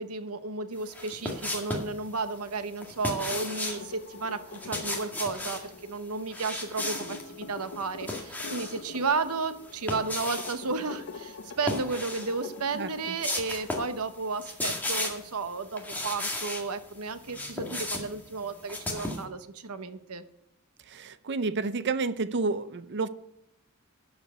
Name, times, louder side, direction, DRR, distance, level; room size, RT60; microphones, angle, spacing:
voice 1, 0.0-20.2, right 4 dB, 85° right, 11 dB, 0.9 m, -33 dB
sound 1, 0.9-1.9 2.8-3.8 4.5-5.6 6.3-7.2 7.7-8.8 9.6-10.6 11.6-12.3 12.7-12.8 13.2-14.0 14.2-15.3 15.8-16.7 17.1-19.2, left 2 dB, 10° left, 1.9 m, -34 dB
sound 2, 3.0-13.7, left 4 dB, 70° left, 0.9 m, -45 dB
voice 2, 12.7-13.1 20.9-23.1, right 3 dB, 55° right, 14 dB, 0.6 m, -30 dB
12.0 x 5.2 x 8.1 m, 0.82 s
head